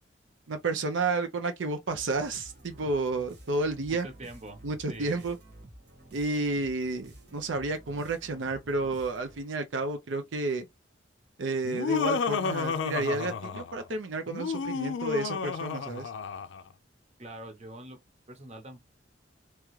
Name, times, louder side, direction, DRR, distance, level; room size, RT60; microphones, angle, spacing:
voice 1, 0.5-4.1 4.6-5.4 6.1-10.7 11.4-16.1, right 3 dB, 80° right, 0.6 m, -31 dB
sound 1, 1.9-9.6, right 1 dB, 60° right, 1.5 m, -51 dB
voice 2, 3.9-4.6 4.9-5.2 17.2-18.0 18.3-18.9, right 2 dB, 35° right, 0.9 m, -44 dB
Laughter, 11.6-13.8 14.3-16.6, left 5 dB, 80° left, 0.4 m, -31 dB
3.5 x 3.0 x 3.1 m
head